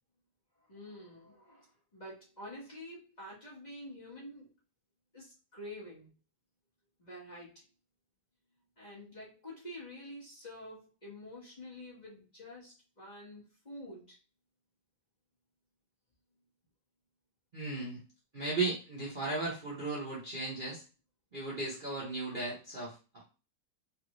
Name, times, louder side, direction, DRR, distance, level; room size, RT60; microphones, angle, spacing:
voice 1, 0.7-4.5 5.1-6.1 7.0-7.6 8.8-14.2, left 1 dB, 25° left, -7 dB, 1.2 m, -48 dB
voice 2, 17.5-18.0 18.3-20.8 21.3-23.2, right 3 dB, 40° right, -6 dB, 0.8 m, -36 dB
3.3 x 2.5 x 3.0 m, 0.34 s
omnidirectional pair, 1.9 m